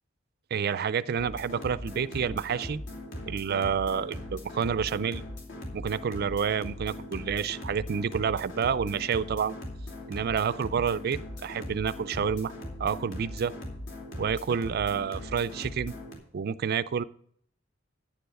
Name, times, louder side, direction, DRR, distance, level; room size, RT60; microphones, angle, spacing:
voice 1, 0.5-2.8 3.2-5.2 5.7-9.6 10.1-12.5 12.8-13.5 14.2-15.9 16.3-17.0, right 7 dB, 50° right, 17 dB, 0.4 m, -29 dB
sound 1, 1.2-16.2, left 1 dB, 70° left, 2.8 m, -40 dB
9.6 x 6.9 x 6.4 m, 0.63 s
head